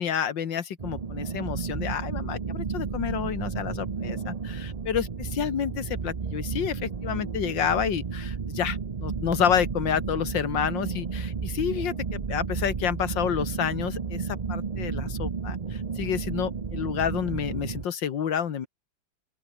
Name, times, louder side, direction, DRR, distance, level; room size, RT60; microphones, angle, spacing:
voice 1, 0.0-18.7, left 8 dB, 70° left, 2.1 m, -29 dB
sound 1, 0.8-17.8, right 5 dB, 60° right, 0.4 m, -32 dB
open air
omnidirectional pair, 2.1 m